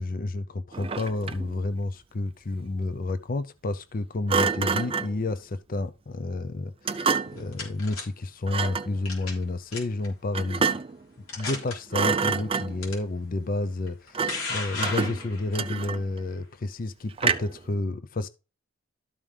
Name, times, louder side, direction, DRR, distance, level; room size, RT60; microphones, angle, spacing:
voice 1, 0.0-10.7 11.4-18.3, left 2 dB, 40° left, 0.5 m, -30 dB
Thump thud, 0.7-1.6 4.3-5.2 6.9-7.5 8.5-8.9 10.3-11.0 11.4-11.6 11.9-12.9 14.1-14.5 14.8-16.2 17.2-17.7, right 5 dB, 25° right, 0.4 m, -27 dB
sound 1, 7.4-8.0 9.1-9.4 9.7-10.1 10.7-10.8 11.3-11.7 12.8-12.9 13.9-15.6, left 4 dB, 85° left, 3.7 m, -34 dB
12.5 x 5.4 x 3.3 m
head